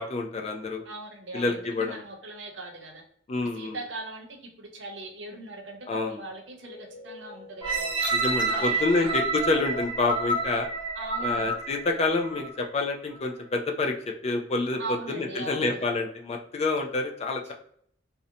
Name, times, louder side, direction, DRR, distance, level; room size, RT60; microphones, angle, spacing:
voice 1, 0.0-0.8 1.3-2.0 3.3-3.8 5.9-6.2 8.1-10.7 11.2-14.8 15.1-17.5, left 3 dB, 35° left, 3 dB, 0.3 m, -28 dB
voice 2, 0.8-3.0 3.4-8.1 8.5-9.2 10.9-11.5 14.8-15.9, right 2 dB, 80° right, 2 dB, 0.7 m, -40 dB
sound 1, 6.4-11.0, left 4 dB, 65° left, 1.1 m, -50 dB
sound 2, 7.6-12.6 13.1-13.2, right 3 dB, 25° right, 0.5 m, -29 dB
2.5 x 2.1 x 2.7 m, 0.64 s
head